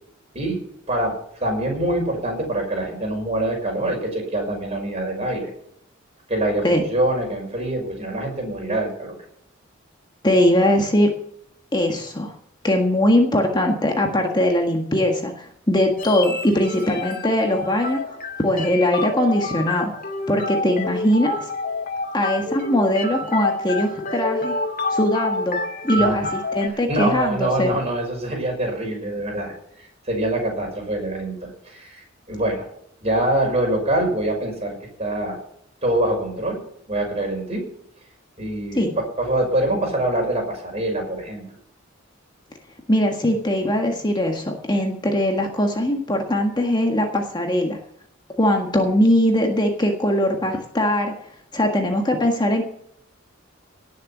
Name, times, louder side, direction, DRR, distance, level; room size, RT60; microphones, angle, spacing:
voice 1, 1.4-5.5 6.3-9.2 26.0-26.3 26.9-32.7 33.0-35.4 35.8-36.6 36.9-37.7 38.4-41.4, right 1 dB, 30° right, 1 dB, 5.8 m, -25 dB
voice 2, 10.2-11.1 11.7-12.3 12.6-18.2 18.4-19.9 20.3-21.5 22.1-24.5 24.9-25.6 25.8-27.8 38.7-39.0 42.9-47.8 48.4-51.1 51.5-52.6, left 1 dB, 20° left, 2 dB, 1.6 m, -21 dB
sound 1, 16.0-26.7, left 2 dB, 45° left, 2.4 m, -28 dB
18.0 x 6.9 x 7.3 m, 0.70 s
head